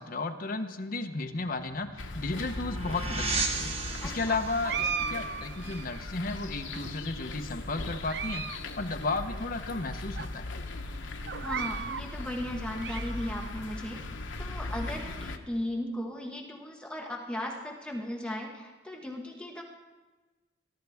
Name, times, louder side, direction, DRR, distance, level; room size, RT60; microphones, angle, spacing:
voice 1, 0.0-8.5 8.8-10.5, left 3 dB, 50° left, 6 dB, 1.0 m, -34 dB
sound 1, 1.4-6.7, right 3 dB, 35° right, 1.4 m, -36 dB
sound 2, 2.0-15.4, left 2 dB, 90° left, 1.0 m, -39 dB
voice 2, 4.0-4.4 11.4-14.0 14.4-19.6, left 1 dB, 5° left, -1 dB, 1.2 m, -36 dB
sound 3, 4.6-6.1 6.7-7.4 7.9-8.6 8.9-9.0 9.7-9.8 10.2-10.3 11.3-12.1 12.5-13.5, right 6 dB, 65° right, 0.5 m, -36 dB
22.0 x 12.0 x 3.5 m, 1.2 s
head